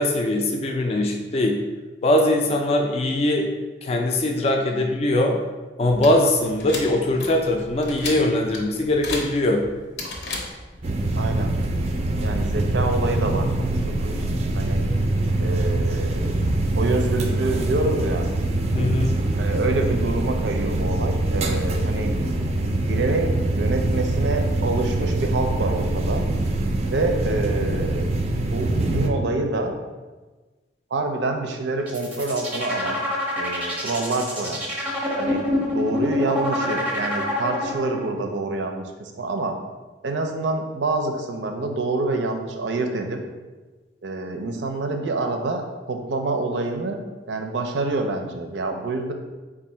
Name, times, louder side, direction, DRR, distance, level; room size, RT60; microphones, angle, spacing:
voice 1, 0.0-1.6 2.0-3.5 3.8-5.4 5.8-9.7 18.7-19.2, left 1 dB, 35° left, 2 dB, 0.3 m, -21 dB
sound 1, 5.9-10.9, left 2 dB, 70° left, 0.7 m, -35 dB
sound 2, 10.8-29.1, right 2 dB, 35° right, 0.4 m, -24 dB
voice 2, 11.2-11.5 12.2-14.8 15.4-16.4 16.8-18.2 19.4-22.1 22.9-26.2 26.9-28.1 28.5-29.7 30.9-33.0 33.4-34.6 35.2-35.4 35.7-39.5 40.0-43.2 44.0-47.0 47.3-49.1, right 2 dB, 90° right, 5 dB, 0.5 m, -27 dB
sound 3, 31.8-38.1, left 1 dB, 10° right, 0.7 m, -26 dB
3.7 x 2.5 x 4.2 m, 1.3 s
head